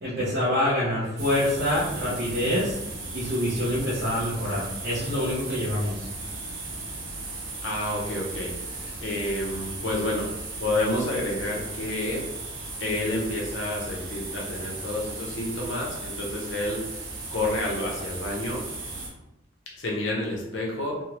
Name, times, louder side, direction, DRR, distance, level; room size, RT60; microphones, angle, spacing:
voice 1, 0.0-2.8 3.1-6.1, left 1 dB, 55° right, -8 dB, 0.9 m, -26 dB
sound 1, 1.2-19.1, right 2 dB, 90° right, 0.8 m, -36 dB
voice 2, 7.6-10.3 10.6-12.3 12.8-16.8 17.3-18.6 19.8-21.0, left 1 dB, 75° left, -2 dB, 0.9 m, -29 dB
3.5 x 2.3 x 3.0 m, 0.91 s
head